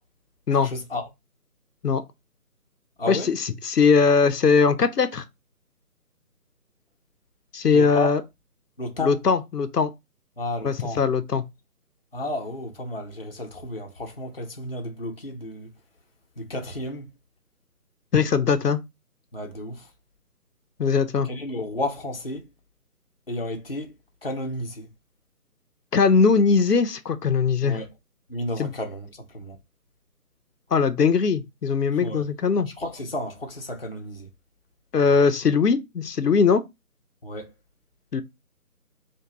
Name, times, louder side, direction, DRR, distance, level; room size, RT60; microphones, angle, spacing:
voice 1, 0.6-1.1 3.0-3.3 7.7-8.2 8.8-9.2 10.4-11.0 12.1-15.7 16.4-17.0 19.3-19.9 21.2-22.4 23.3-23.9 24.2-24.9 27.6-27.9 28.3-29.6 32.0-32.3 32.8-34.3 37.2-37.5, left 1 dB, 40° left, 0.6 m, -32 dB
voice 2, 3.1-5.2 7.5-8.2 9.0-9.9 10.6-11.4 18.1-18.8 20.8-21.3 25.9-27.8 28.6-28.7 30.7-32.7 34.9-36.6 38.1-38.2, left 5 dB, 85° left, 0.6 m, -20 dB
3.4 x 2.2 x 3.0 m
figure-of-eight pair, 155°, 47 cm